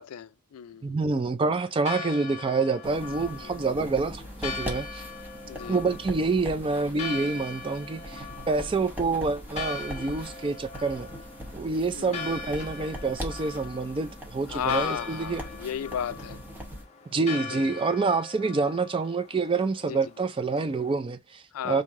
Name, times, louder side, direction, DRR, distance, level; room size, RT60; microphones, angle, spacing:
voice 1, 0.0-0.8 5.5-5.8 11.9-12.2 14.5-16.4 17.5-17.6 19.9-20.0 21.5-21.8, left 8 dB, 80° left, 0.4 m, -33 dB
voice 2, 0.8-5.0 5.7-11.1 11.5-15.4 17.1-21.8, right 4 dB, 25° right, 0.3 m, -27 dB
Church bell, 1.5-20.9, left 4 dB, 30° left, 0.6 m, -41 dB
sound 1, 2.8-16.8, equal, 10° right, 0.8 m, -41 dB
3.2 x 2.7 x 3.6 m
head